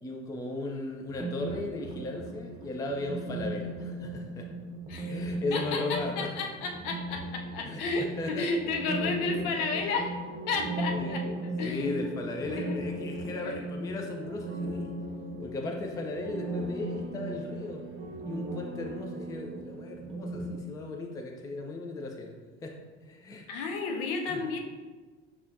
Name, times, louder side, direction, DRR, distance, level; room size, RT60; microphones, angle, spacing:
voice 1, 0.0-4.5 5.1-6.3 7.6-7.8 8.2-8.5 11.0-11.3 11.6-15.0 15.4-17.8 18.3-22.3 22.6-22.8 23.0-23.5 24.3-24.4, left 2 dB, 10° left, 2 dB, 0.4 m, -36 dB
sound 1, 1.1-20.6, right 1 dB, 20° right, 0.8 m, -37 dB
voice 2, 4.9-5.2 5.5-10.2 10.5-11.2 11.6-12.0 12.5-12.8 13.4-13.7 23.5-24.6, left 3 dB, 55° left, 3 dB, 0.7 m, -32 dB
sound 2, 8.6-20.3, right 3 dB, 65° right, 0.7 m, -45 dB
6.7 x 2.3 x 2.6 m, 1.4 s
figure-of-eight pair, 65°, 35 cm